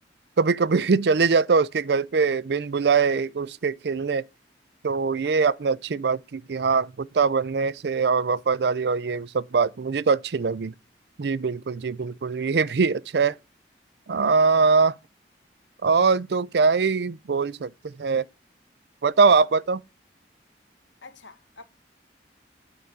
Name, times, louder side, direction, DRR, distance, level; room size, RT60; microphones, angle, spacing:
voice 1, 0.4-4.2 4.8-10.7 11.2-13.3 14.1-15.0 15.8-18.2 19.0-19.8, right 5 dB, 65° right, 0.4 m, -22 dB
voice 2, 21.0-21.6, left 3 dB, 90° left, 1.4 m, -47 dB
9.6 x 5.0 x 7.8 m
head